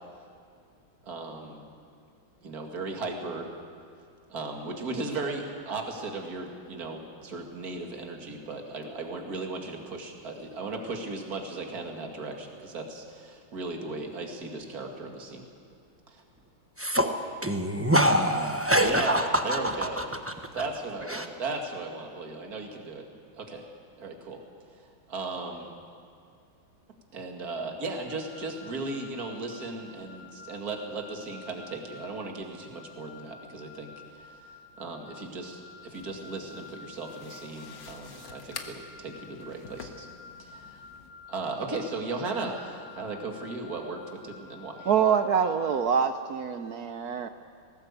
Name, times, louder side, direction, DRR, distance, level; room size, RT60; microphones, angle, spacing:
voice 1, 1.0-1.6 2.4-3.5 4.3-15.4 16.1-16.2 18.8-19.2 19.4-20.0 20.5-23.0 23.3-23.7 24.0-24.4 24.8-25.7 27.1-33.9 34.1-34.4 34.8-40.1 40.4-40.8 41.3-44.9, right 3 dB, 45° right, 2 dB, 2.6 m, -36 dB
voice 2, 16.8-20.7 21.0-21.3, equal, 10° right, 5 dB, 0.6 m, -26 dB
sound 1, 28.1-45.8, left 5 dB, 75° left, 4.6 m, -50 dB
sound 2, 35.9-41.1, left 5 dB, 60° left, 2.0 m, -47 dB
voice 3, 44.8-47.3, right 7 dB, 65° right, 9 dB, 1.0 m, -25 dB
20.5 x 18.0 x 8.2 m, 2.3 s
omnidirectional pair, 2.3 m